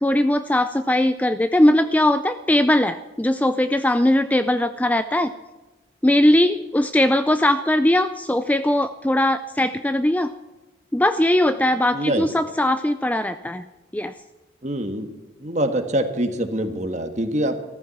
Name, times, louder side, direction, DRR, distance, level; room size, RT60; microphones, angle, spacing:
voice 1, 0.0-5.3 6.0-10.3 10.9-13.7 13.9-14.1, left 1 dB, 10° left, 10 dB, 0.4 m, -20 dB
voice 2, 11.9-12.2 14.6-15.1 15.4-17.6, right 1 dB, 35° right, 6 dB, 1.6 m, -24 dB
14.5 x 14.0 x 5.9 m, 1.1 s
head